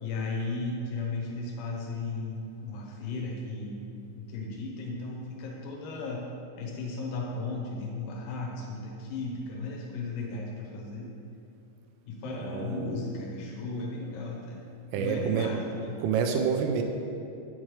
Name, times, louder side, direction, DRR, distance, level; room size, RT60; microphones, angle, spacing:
voice 1, 0.0-3.8 4.2-6.3 6.6-11.1 12.1-14.6 15.0-16.0, left 3 dB, 85° left, -2 dB, 4.0 m, -35 dB
voice 2, 12.5-12.9 14.9-15.5 16.0-16.8, right 6 dB, 85° right, 4 dB, 3.0 m, -27 dB
8.7 x 8.5 x 3.2 m, 2.7 s
omnidirectional pair, 5.9 m